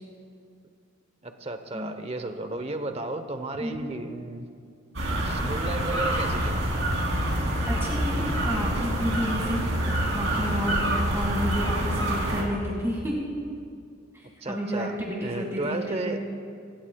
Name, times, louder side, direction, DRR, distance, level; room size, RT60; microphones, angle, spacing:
voice 1, 1.2-4.5 5.2-6.5 14.4-16.2, right 2 dB, 30° right, 8 dB, 0.8 m, -33 dB
sound 1, 4.9-12.4, right 1 dB, 60° right, 2.9 m, -26 dB
voice 2, 7.6-9.6 10.0-13.1 14.1-16.2, equal, 15° right, -3 dB, 1.9 m, -31 dB
25.5 x 16.0 x 2.3 m, 2.3 s
head